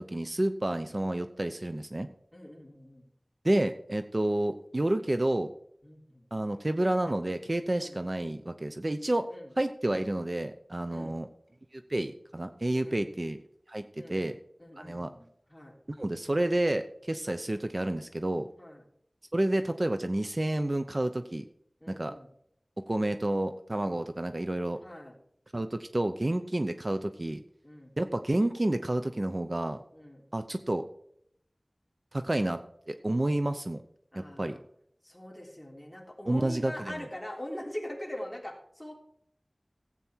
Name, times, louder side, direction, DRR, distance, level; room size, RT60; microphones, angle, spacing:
voice 1, 0.0-2.1 3.4-5.5 6.3-9.3 9.6-11.3 11.7-13.4 13.7-13.8 14.1-14.4 14.8-15.1 16.0-18.5 19.3-21.4 21.9-22.1 22.9-24.8 25.5-27.4 28.0-29.8 30.3-30.8 32.1-32.6 32.9-33.8 34.1-34.6 36.3-37.1, right 1 dB, 45° right, 9 dB, 0.7 m, -30 dB
voice 2, 2.3-3.1 5.8-6.2 7.8-8.0 9.3-9.5 10.9-11.2 12.8-13.1 14.0-14.2 14.6-15.8 18.6-18.8 21.8-22.3 24.8-25.1 27.6-27.9 29.9-30.2 34.1-34.6 35.0-38.9, left 1 dB, 15° left, 0 dB, 3.3 m, -42 dB
15.0 x 8.6 x 4.5 m, 0.68 s
wide cardioid pair, 50°, 0 cm